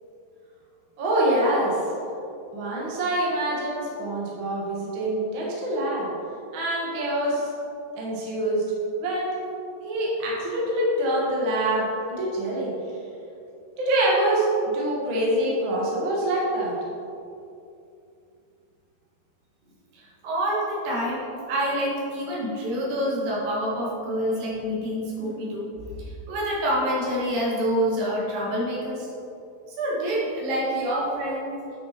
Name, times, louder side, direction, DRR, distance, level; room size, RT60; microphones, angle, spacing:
voice 1, 1.0-1.8 2.5-6.1 6.5-7.5 8.0-8.6 9.0-9.5 9.8-12.7 13.8-14.5 14.7-16.8, right 1 dB, 45° right, -5 dB, 1.7 m, -25 dB
voice 2, 19.9-25.7 26.0-29.1 29.8-31.5, equal, 70° right, -5 dB, 3.2 m, -27 dB
9.3 x 5.5 x 4.3 m, 2.7 s
omnidirectional pair, 4.2 m